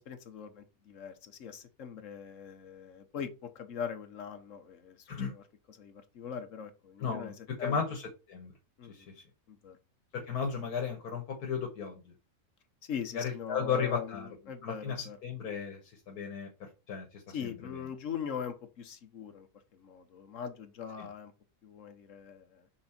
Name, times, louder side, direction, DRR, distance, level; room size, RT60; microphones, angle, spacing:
voice 1, 0.0-5.4 5.7-7.8 8.8-9.1 9.5-9.8 12.8-15.2 17.3-19.5 19.7-21.3 21.6-22.7, left 7 dB, 60° left, 8 dB, 1.2 m, -41 dB
voice 2, 7.0-7.3 7.6-8.5 8.9-9.2 10.1-12.0 13.1-14.3 14.6-17.4 21.0-21.1, left 6 dB, 85° left, 1 dB, 1.7 m, -35 dB
6.1 x 3.8 x 4.3 m, 0.30 s
omnidirectional pair, 1.6 m